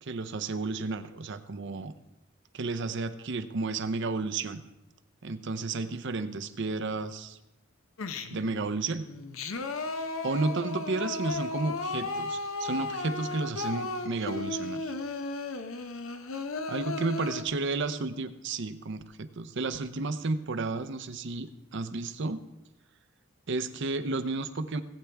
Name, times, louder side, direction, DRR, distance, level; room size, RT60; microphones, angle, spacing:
voice 1, 0.0-1.9 2.5-4.6 5.2-7.4 8.3-9.1 10.2-14.8 16.7-22.4 23.5-24.8, right 3 dB, 60° right, 11 dB, 0.6 m, -32 dB
Singing, 8.0-8.6 9.1-17.4, left 3 dB, 80° left, 0.8 m, -35 dB
18.0 x 8.4 x 3.4 m, 0.92 s
head